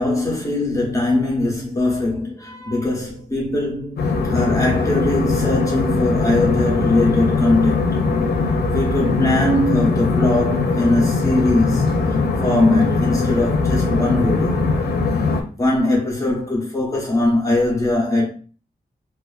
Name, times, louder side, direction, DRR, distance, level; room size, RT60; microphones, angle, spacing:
voice 1, 0.0-8.1 8.7-11.9 12.4-14.7 15.6-18.3, left 2 dB, 20° left, 0.8 m, -20 dB
sound 1, 4.0-15.4, left 4 dB, 90° left, 0.5 m, -20 dB
2.5 x 2.2 x 2.3 m
wide cardioid pair, 170°, 16 cm